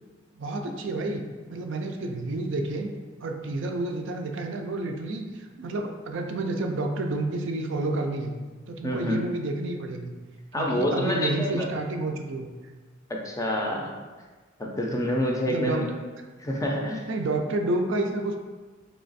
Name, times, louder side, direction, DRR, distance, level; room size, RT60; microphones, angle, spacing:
voice 1, 0.4-2.9 3.2-8.3 8.7-10.1 10.5-12.5 15.4-15.8 17.1-18.4, right 2 dB, 65° right, 3 dB, 0.4 m, -30 dB
voice 2, 8.8-9.2 10.5-11.7 13.1-13.9 14.6-15.8 16.4-17.1, equal, 15° left, 0 dB, 0.5 m, -27 dB
3.3 x 2.9 x 4.0 m, 1.3 s
head